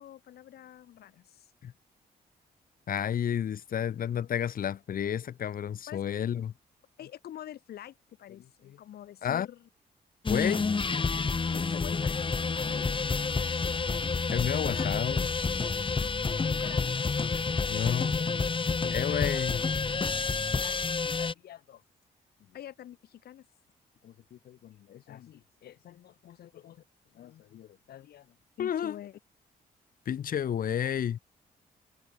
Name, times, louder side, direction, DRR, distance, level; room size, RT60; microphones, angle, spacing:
voice 1, 0.0-1.5 5.9-6.0 7.0-9.7 11.5-14.0 14.5-14.9 15.9-17.3 18.8-19.4 20.6-21.8 22.4-23.5 24.0-26.8 27.1-29.2, left 11 dB, 80° left, 4.3 m, -47 dB
voice 2, 2.9-6.5 9.2-9.5 10.3-10.7 14.3-15.3 17.6-18.2 18.9-19.6 28.6-28.9 30.1-31.2, left 9 dB, 65° left, 1.6 m, -30 dB
sound 1, 10.3-21.3, left 4 dB, 30° left, 2.1 m, -29 dB
cardioid pair, 80°, 16 cm